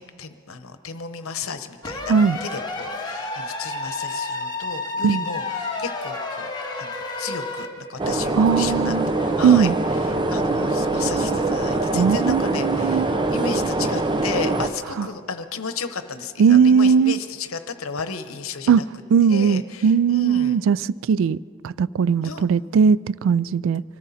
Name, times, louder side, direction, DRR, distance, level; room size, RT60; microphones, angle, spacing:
voice 1, 0.0-6.5 6.8-18.9 19.3-20.6 22.2-22.4, left 5 dB, 80° left, 0.9 m, -34 dB
sound 1, 1.8-7.7, left 3 dB, 20° left, 1.6 m, -30 dB
sound 2, 8.0-14.7, right 2 dB, 20° right, 0.6 m, -23 dB
voice 2, 8.4-9.1 9.4-9.7 11.9-13.1 15.0-15.1 16.4-17.2 18.7-18.8 19.1-20.8 21.1-21.4 21.6-23.8, right 6 dB, 65° right, 0.3 m, -18 dB
24.5 x 14.0 x 4.2 m
head